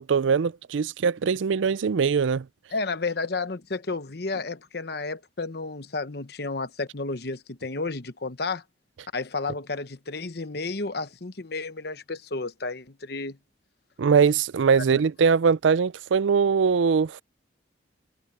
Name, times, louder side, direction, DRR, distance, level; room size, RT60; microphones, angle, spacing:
voice 1, 0.0-2.4 14.0-17.2, right 6 dB, 85° right, 0.4 m, -22 dB
voice 2, 2.7-8.6 9.1-13.4 14.9-15.0, left 3 dB, 55° left, 1.0 m, -32 dB
head